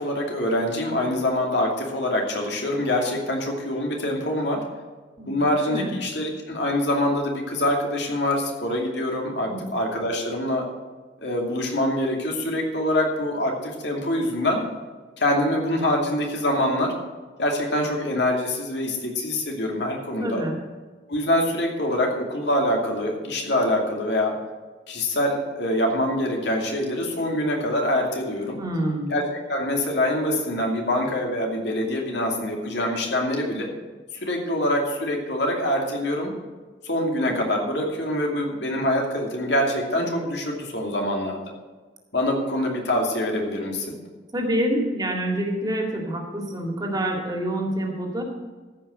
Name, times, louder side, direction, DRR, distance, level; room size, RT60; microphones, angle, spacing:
voice 1, 0.0-4.6 5.3-10.6 11.2-14.6 15.2-16.9 17.4-20.4 21.1-24.3 24.9-28.6 29.1-29.2 29.5-33.7 34.2-36.3 36.8-41.4 42.1-44.0, left 1 dB, 75° left, 1 dB, 2.6 m, -25 dB
voice 2, 20.2-20.5 28.6-29.1 44.3-48.2, right 1 dB, 20° right, 1 dB, 2.1 m, -26 dB
14.5 x 5.7 x 7.6 m, 1.4 s
head